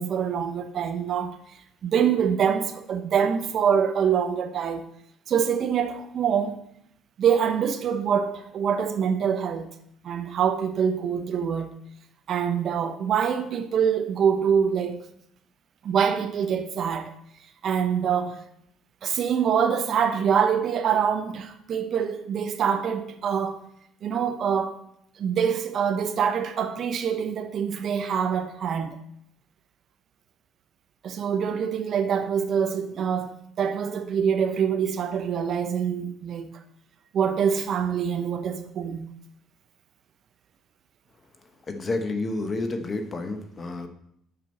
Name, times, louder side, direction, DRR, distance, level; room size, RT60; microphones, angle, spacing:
voice 1, 0.0-1.4 1.8-4.9 5.3-6.6 7.2-9.7 10.0-11.7 12.3-15.0 15.8-17.1 17.6-18.4 19.0-23.6 24.0-24.8 25.2-29.0 31.0-36.5 37.1-39.1, right 7 dB, 50° right, 0.7 m, -25 dB
voice 2, 41.7-43.9, left 2 dB, 30° left, 0.9 m, -30 dB
7.6 x 6.0 x 4.3 m
cardioid pair, 115°, 0 cm